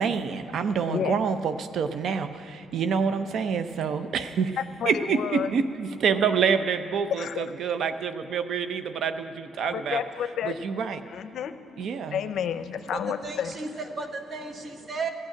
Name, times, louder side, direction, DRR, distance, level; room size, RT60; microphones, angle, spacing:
voice 1, 0.0-2.3 2.7-4.5 4.8-10.0 10.4-11.0 11.8-12.2, right 6 dB, 65° right, 10 dB, 0.6 m, -27 dB
voice 2, 4.6-5.5 7.2-7.4 9.7-10.5 11.1-11.6 12.1-13.5, left 8 dB, 70° left, 11 dB, 0.6 m, -30 dB
voice 3, 12.9-15.1, right 3 dB, 45° right, 6 dB, 1.2 m, -34 dB
15.0 x 6.4 x 9.8 m, 2.9 s
cardioid pair, 90°, 0 cm